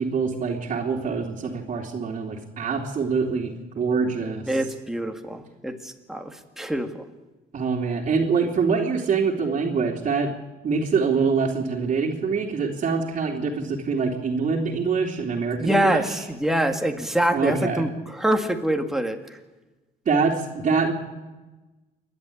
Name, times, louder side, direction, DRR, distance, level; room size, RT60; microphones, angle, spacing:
voice 1, 0.0-4.4 7.5-10.3 10.6-16.0 17.3-17.8 20.0-20.9, right 5 dB, 45° right, -4 dB, 3.1 m, -24 dB
voice 2, 4.5-7.0 15.6-19.2, right 1 dB, ahead, 4 dB, 2.1 m, -25 dB
28.0 x 11.5 x 8.7 m, 1.2 s
cardioid pair, 110°, 17 cm